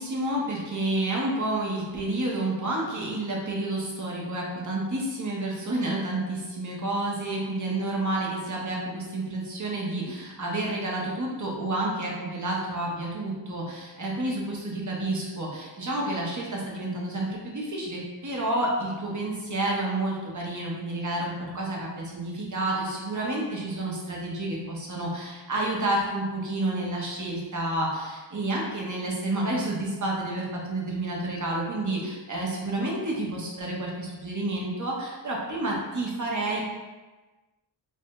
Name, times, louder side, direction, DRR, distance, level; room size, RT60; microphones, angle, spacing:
voice 1, 0.0-36.6, right 2 dB, 45° right, -3 dB, 0.8 m, -30 dB
3.4 x 2.2 x 2.9 m, 1.2 s
wide cardioid pair, 60°, 43 cm